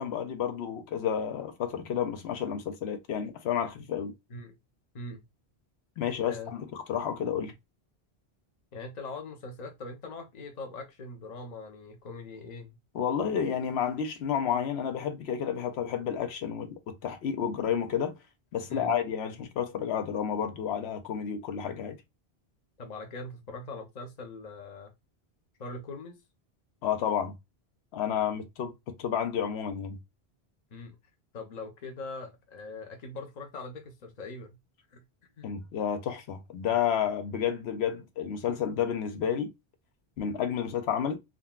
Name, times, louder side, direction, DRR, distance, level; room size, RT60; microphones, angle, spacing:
voice 1, 0.0-4.1 6.0-7.5 12.9-18.2 18.5-22.0 26.8-27.3 27.9-30.0 35.4-39.5 40.2-41.2, left 8 dB, 85° left, 0.9 m, -31 dB
voice 2, 8.7-12.8 18.7-18.9 22.8-24.9 25.6-26.2 30.7-31.0 31.3-34.6 34.9-35.0 35.4-35.5 39.2-39.3, left 3 dB, 45° left, 0.8 m, -41 dB
3.7 x 2.2 x 2.3 m
omnidirectional pair, 1.1 m